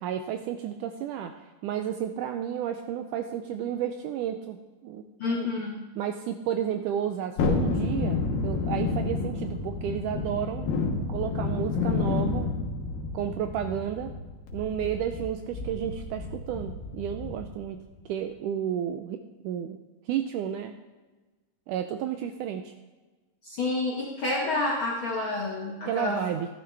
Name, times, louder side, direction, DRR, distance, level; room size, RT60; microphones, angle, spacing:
voice 1, 0.0-4.6 4.8-5.5 6.0-10.7 11.1-12.5 13.1-14.1 14.5-17.8 18.1-19.8 20.1-20.7 21.7-22.7 25.9-26.5, right 9 dB, 80° right, 7 dB, 1.9 m, -32 dB
voice 2, 5.2-5.7 23.4-26.2, left 3 dB, 55° left, -3 dB, 1.4 m, -29 dB
Thunderstorm, 7.4-17.6 17.9-18.0, left 4 dB, 90° left, 3.1 m, -30 dB
12.5 x 12.5 x 3.3 m, 1.2 s
omnidirectional pair, 4.1 m